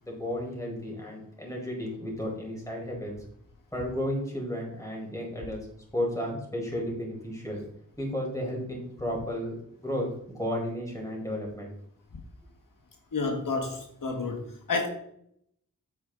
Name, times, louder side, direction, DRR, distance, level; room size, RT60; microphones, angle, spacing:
voice 1, 0.0-3.1 3.7-5.6 5.9-7.6 8.0-10.1 10.3-11.7, equal, 10° left, -2 dB, 4.8 m, -33 dB
voice 2, 13.1-14.4 14.7-14.9, left 3 dB, 80° left, 3 dB, 1.5 m, -29 dB
9.5 x 9.0 x 3.9 m, 0.71 s
wide cardioid pair, 75°, 33 cm